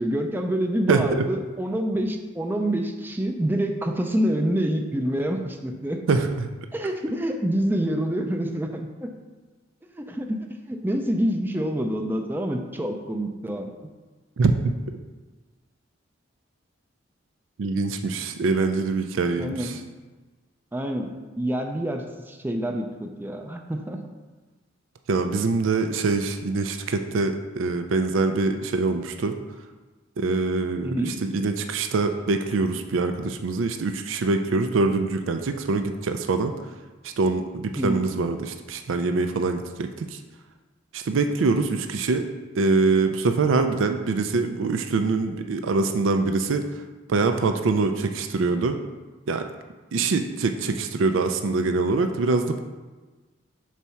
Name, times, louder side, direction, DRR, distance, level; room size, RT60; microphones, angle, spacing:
voice 1, 0.0-6.0 6.7-9.1 9.9-10.4 10.7-13.7 19.4-19.8 20.7-24.0 30.8-31.1 37.8-38.0, right 1 dB, 10° right, 3 dB, 0.4 m, -27 dB
voice 2, 0.9-1.2 6.1-6.5 14.4-14.5 17.6-19.8 25.1-29.3 30.2-36.5 37.0-40.2 40.9-42.3 42.6-46.7 47.1-48.8 49.3-49.5 49.9-52.6, right 3 dB, 85° right, 7 dB, 0.4 m, -24 dB
4.7 x 4.1 x 5.6 m, 1.3 s
head